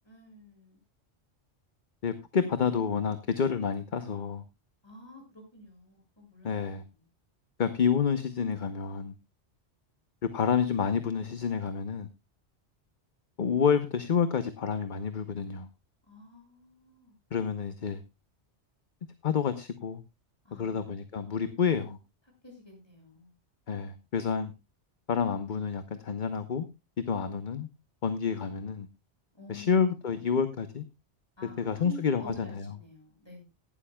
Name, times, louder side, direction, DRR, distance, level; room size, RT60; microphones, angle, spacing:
voice 1, 0.0-0.8 4.8-6.8 16.1-17.1 20.4-20.9 22.4-23.3 29.3-30.1 31.4-33.4, equal, 20° left, 6.9 m, -49 dB
voice 2, 2.0-4.4 6.4-6.8 7.6-9.1 10.3-12.1 13.4-15.7 17.3-18.0 19.2-20.0 20.6-22.0 23.7-24.5 25.1-26.6 27.1-27.7 28.0-28.9 29.5-30.8 31.6-32.6, left 6 dB, 45° left, 1.0 m, -29 dB
17.5 x 12.0 x 2.3 m
omnidirectional pair, 1.2 m